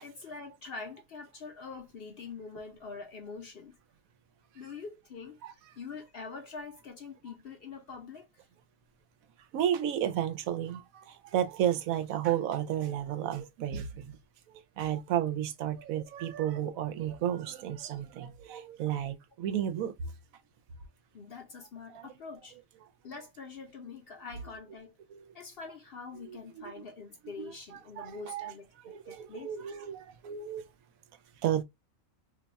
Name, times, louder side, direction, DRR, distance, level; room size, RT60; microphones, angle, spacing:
voice 1, 0.0-3.7 4.5-5.4 5.8-8.5 21.1-22.6 23.0-24.9 25.3-29.7, left 4 dB, 55° left, 0.7 m, -45 dB
voice 2, 9.5-14.2 14.8-19.9 21.9-22.1 25.1-25.2 26.3-26.4 27.4-27.5 28.0-28.5 28.8-30.7 31.4-31.6, right 10 dB, 80° right, 1.0 m, -32 dB
2.6 x 2.3 x 3.9 m
omnidirectional pair, 1.5 m